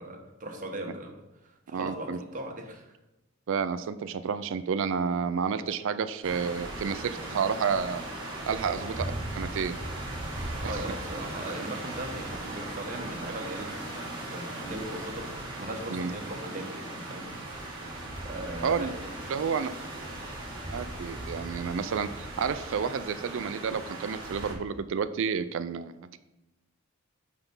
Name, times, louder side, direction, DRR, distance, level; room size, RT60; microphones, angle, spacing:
voice 1, 0.0-2.9 8.6-8.8 10.5-17.3 18.2-19.1, right 1 dB, 40° right, 3 dB, 1.1 m, -39 dB
voice 2, 1.7-2.2 3.5-8.1 8.5-8.9 9.4-9.8 10.6-10.7 15.9-16.1 18.6-18.9 19.3-19.7 20.7-26.2, right 6 dB, 65° right, 12 dB, 0.4 m, -30 dB
sound 1, 6.2-24.5, right 1 dB, 25° right, 1.9 m, -38 dB
6.0 x 5.6 x 5.3 m, 0.98 s
head